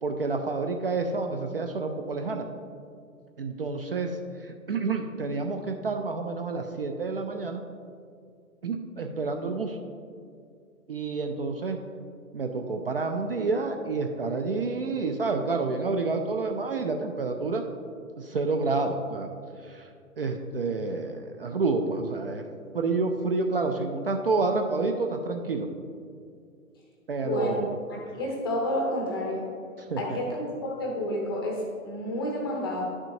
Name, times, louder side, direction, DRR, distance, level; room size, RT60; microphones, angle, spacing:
voice 1, 0.0-2.5 3.4-7.6 8.6-9.8 10.9-11.8 12.3-17.6 18.2-19.3 19.6-22.4 22.7-25.7 27.1-27.7 29.8-30.2, right 3 dB, 45° right, 4 dB, 0.5 m, -29 dB
voice 2, 27.2-27.5 27.9-29.4 30.0-32.8, left 1 dB, 15° left, 0 dB, 0.6 m, -30 dB
10.5 x 6.1 x 2.6 m, 2.3 s
figure-of-eight pair, 130°, 43 cm